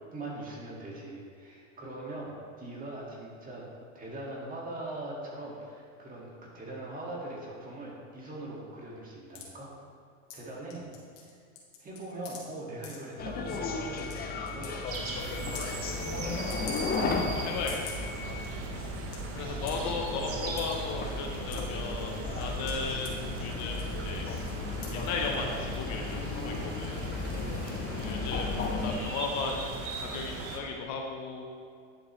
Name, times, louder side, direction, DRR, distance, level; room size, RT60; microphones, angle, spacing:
voice 1, 0.1-3.6 3.9-9.7 10.3-10.9 11.1-11.4 11.8-16.7 19.4-19.7 20.4-20.5 28.6-29.1, right 2 dB, 20° right, -3 dB, 2.0 m, -41 dB
sound 1, 9.3-9.5 10.3-10.4 10.7-11.3 11.6-12.4 12.8-13.0 13.6-13.7 14.0-14.1 14.5-14.7 14.9-15.0 15.4-15.7 16.5-17.2 17.5-18.1 18.5-18.6 18.8-19.2 19.7-19.9 20.6-20.8 21.2-21.9 22.4-23.1 23.7-24.0 24.4-24.5 24.8-25.0 25.3-25.4, left 6 dB, 70° left, 2.1 m, -44 dB
sound 2, 13.2-29.0, left 4 dB, 25° left, 0.7 m, -35 dB
sound 3, 14.9-30.6, right 3 dB, 35° right, 1.2 m, -39 dB
voice 2, 17.1-18.1 19.3-24.3 24.9-27.0 28.0-31.4, left 4 dB, 45° left, 2 dB, 1.0 m, -36 dB
10.5 x 7.1 x 3.2 m, 2.3 s
supercardioid pair, 130°, 39 cm